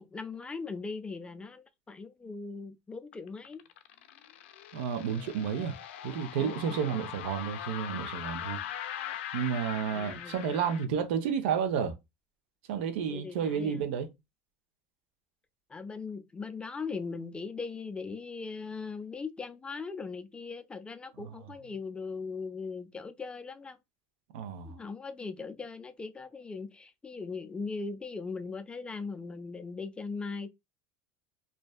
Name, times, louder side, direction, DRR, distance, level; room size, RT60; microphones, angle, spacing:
voice 1, 0.0-3.6 6.4-7.0 9.9-10.7 13.1-13.9 15.7-23.8 24.6-30.5, left 4 dB, 15° left, 0.4 m, -39 dB
sound 1, 3.1-10.9, left 10 dB, 85° left, 0.4 m, -41 dB
voice 2, 4.7-5.8 6.0-8.6 9.3-11.9 12.7-14.1 24.3-24.7, right 7 dB, 80° right, 0.6 m, -31 dB
2.5 x 2.2 x 2.3 m
supercardioid pair, 110°, 6 cm